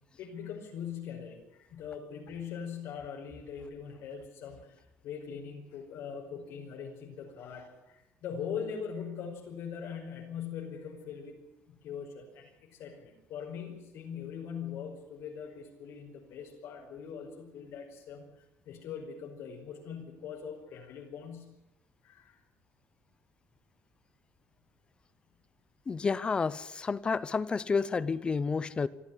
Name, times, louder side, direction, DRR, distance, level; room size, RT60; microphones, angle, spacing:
voice 1, 0.2-11.4 11.7-18.3 18.6-21.5 22.0-22.4, left 7 dB, 70° left, 0 dB, 5.3 m, -41 dB
voice 2, 25.9-28.9, left 5 dB, 20° left, 18 dB, 0.8 m, -30 dB
25.0 x 14.0 x 10.0 m, 0.90 s
cardioid pair, 175°, 5 cm